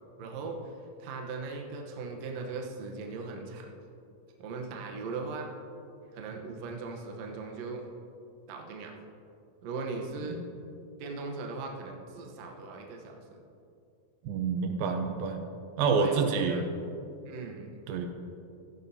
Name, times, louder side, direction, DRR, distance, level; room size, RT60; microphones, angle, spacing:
voice 1, 0.2-0.7 1.0-3.7 4.4-5.5 6.1-7.9 8.5-8.9 9.6-10.4 11.0-13.4 16.0-16.6 17.3-17.8, right 3 dB, 65° right, 1 dB, 1.8 m, -38 dB
voice 2, 14.2-15.4 15.8-16.7 17.9-18.1, right 5 dB, 80° right, 5 dB, 2.5 m, -28 dB
15.0 x 11.0 x 2.8 m, 2.6 s
omnidirectional pair, 4.2 m